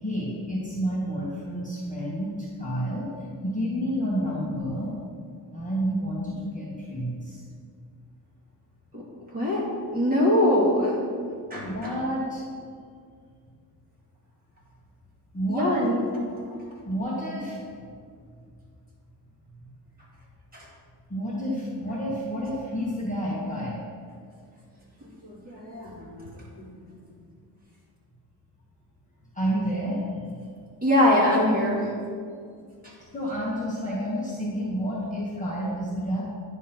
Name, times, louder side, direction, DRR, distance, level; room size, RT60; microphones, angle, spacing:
voice 1, 0.0-3.1 3.4-5.0 5.5-7.4 11.6-12.4 15.3-15.8 16.8-17.6 19.6-19.7 21.1-23.8 29.3-30.4 33.1-36.2, equal, 20° left, -6 dB, 1.0 m, -29 dB
voice 2, 9.3-9.6 9.9-11.0 11.5-11.9 15.5-16.0 20.5-20.7 25.2-26.3 26.6-26.7 30.8-31.9 32.8-32.9, left 1 dB, 20° right, -6 dB, 1.9 m, -23 dB
9.9 x 3.6 x 5.6 m, 2.2 s
wide cardioid pair, 180°, 42 cm